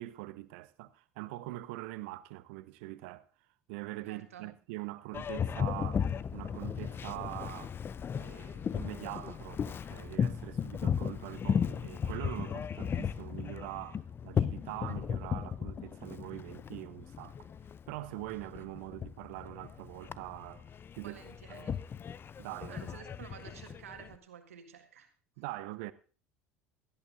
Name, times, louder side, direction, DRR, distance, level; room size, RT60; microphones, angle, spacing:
voice 1, 0.0-3.3 3.7-7.8 8.2-17.5 17.9-20.7 20.9-21.2 21.5-21.6 22.4-22.9 25.4-25.9, right 18 dB, 65° right, 0.7 m, -43 dB
voice 2, 4.0-4.5 21.0-21.8 22.7-25.1, right 8 dB, 85° right, 1.8 m, -51 dB
Boat Water vehicle, 5.1-24.1, left 7 dB, 30° left, 0.5 m, -36 dB
17.0 x 13.5 x 2.6 m
hypercardioid pair, 75°, 7 cm